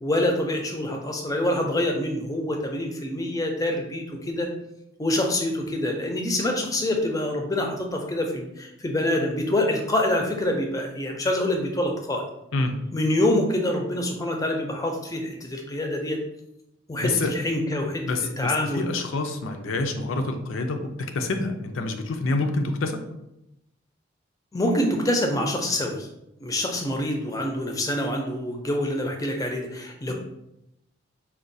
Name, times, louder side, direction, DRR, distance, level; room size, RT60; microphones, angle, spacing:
voice 1, 0.0-4.5 5.0-12.2 12.9-16.2 16.9-18.0 18.4-18.9 24.5-26.1 26.4-30.1, left 1 dB, 20° left, 2 dB, 0.4 m, -26 dB
voice 2, 17.0-17.3 18.0-23.0 30.1-30.2, left 3 dB, 90° left, 5 dB, 0.5 m, -27 dB
4.3 x 2.3 x 2.6 m, 0.85 s
head